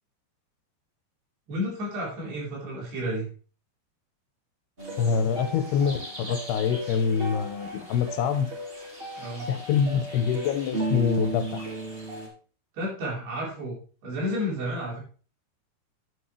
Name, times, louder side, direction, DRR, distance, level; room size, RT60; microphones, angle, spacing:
voice 1, 1.5-3.3 9.2-9.5 12.7-15.0, equal, 80° right, -5 dB, 6.2 m, -31 dB
sound 1, 4.8-12.3, right 1 dB, 20° right, 1.7 m, -35 dB
voice 2, 5.0-8.5 9.5-11.7, left 7 dB, 90° left, 8 dB, 3.0 m, -25 dB
10.0 x 8.2 x 3.3 m, 0.40 s
omnidirectional pair, 4.5 m